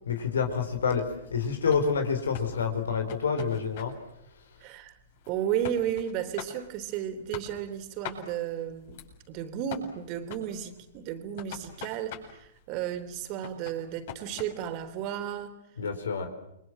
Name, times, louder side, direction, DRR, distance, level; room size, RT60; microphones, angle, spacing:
voice 1, 0.1-1.0 1.3-3.9 15.8-16.3, left 6 dB, 80° left, 5 dB, 4.6 m, -28 dB
sound 1, 1.7-15.4, left 8 dB, 55° left, 7.6 m, -46 dB
voice 2, 4.6-5.0 5.3-9.0 9.3-15.6, right 10 dB, 40° right, 9 dB, 3.5 m, -33 dB
29.5 x 24.0 x 7.7 m, 0.81 s
hypercardioid pair, 115°, 0 cm